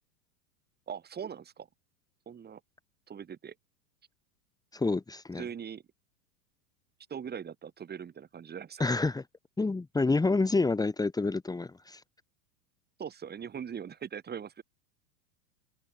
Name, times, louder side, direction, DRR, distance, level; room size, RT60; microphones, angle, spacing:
voice 1, 0.9-1.7 2.3-2.6 3.1-3.5 5.4-5.8 7.1-8.9 13.0-14.6, right 7 dB, 20° right, 5.9 m, -41 dB
voice 2, 4.7-5.4 8.8-9.2 9.6-12.0, left 3 dB, 10° left, 3.3 m, -28 dB
open air
hypercardioid pair, 125°, 45 cm